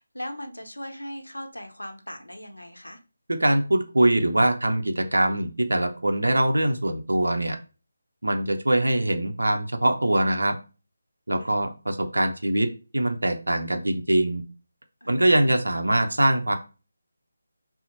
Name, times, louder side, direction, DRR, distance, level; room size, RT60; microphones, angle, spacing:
voice 1, 0.0-3.0 11.4-11.5 15.0-15.6, equal, 85° left, 4 dB, 0.7 m, -39 dB
voice 2, 3.4-7.6 8.2-10.5 11.3-12.7 12.9-14.4 15.1-16.6, right 1 dB, 75° right, 5 dB, 0.5 m, -23 dB
2.8 x 2.0 x 3.8 m, 0.34 s
figure-of-eight pair, 155°, 0 cm